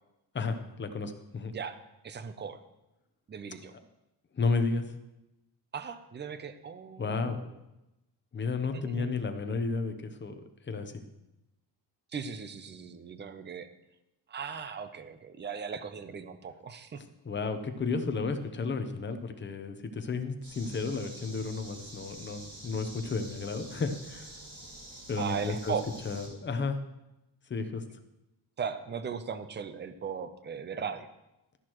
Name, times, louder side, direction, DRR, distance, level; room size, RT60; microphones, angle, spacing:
voice 1, 0.3-1.5 4.3-4.9 7.0-7.4 8.3-10.3 10.7-11.0 17.0-24.3 25.1-25.7 26.0-26.8 27.5-27.8, left 4 dB, 25° left, 7 dB, 0.8 m, -32 dB
voice 2, 1.5-2.6 3.3-3.7 5.7-7.5 8.7-9.1 12.1-13.7 14.3-17.0 25.2-25.9 28.6-31.1, right 6 dB, 25° right, 11 dB, 0.5 m, -38 dB
sound 1, 20.4-26.3, right 1 dB, 60° right, 2.8 m, -47 dB
12.5 x 10.5 x 3.0 m, 0.94 s
wide cardioid pair, 165°, 41 cm